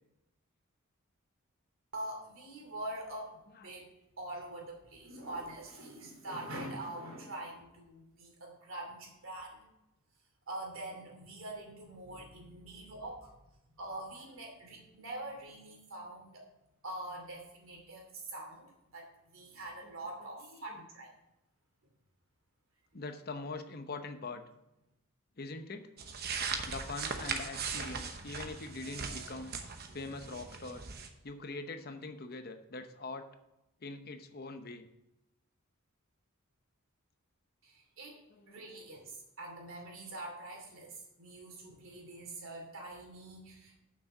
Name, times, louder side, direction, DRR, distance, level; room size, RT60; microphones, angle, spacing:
voice 1, 1.9-3.9 4.2-9.7 10.5-13.3 13.8-16.4 16.8-18.6 18.9-21.1 37.6-38.2 38.5-43.8, right 1 dB, 65° right, 1 dB, 2.7 m, -44 dB
voice 2, 19.8-20.9 22.9-24.4 25.4-25.9 26.7-29.5 29.9-30.9 31.2-33.3 33.8-34.9 38.3-38.8, left 3 dB, 45° left, 8 dB, 0.8 m, -43 dB
sound 1, 26.0-31.1, right 5 dB, 45° right, 0.9 m, -39 dB
7.3 x 6.2 x 6.7 m, 0.89 s
head